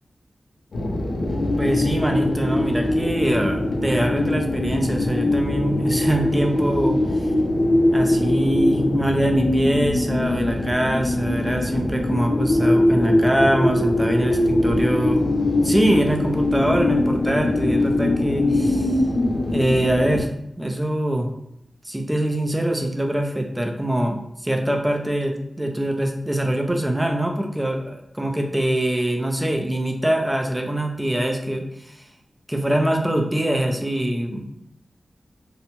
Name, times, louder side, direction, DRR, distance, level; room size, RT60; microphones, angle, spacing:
sound 1, 0.7-20.2, left 1 dB, 85° left, 0.4 m, -22 dB
voice 1, 1.6-7.3 7.9-15.2 15.6-19.0 19.5-20.3 20.6-21.3 21.8-32.0 32.5-34.5, right 1 dB, 10° right, 3 dB, 0.4 m, -23 dB
2.7 x 2.1 x 2.8 m, 0.78 s
wide cardioid pair, 105°, 0 cm